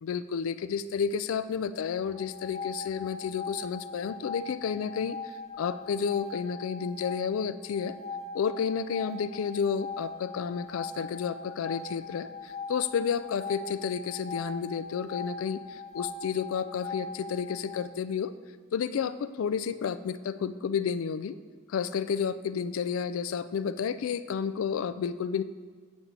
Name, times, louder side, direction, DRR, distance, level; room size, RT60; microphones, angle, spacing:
voice 1, 0.0-5.2 5.6-8.0 8.3-18.3 18.7-21.4 21.7-25.4, left 7 dB, 85° left, 13 dB, 0.4 m, -31 dB
sound 1, 2.0-17.8, left 4 dB, 35° left, 0.7 m, -40 dB
7.1 x 5.2 x 7.3 m, 1.5 s
head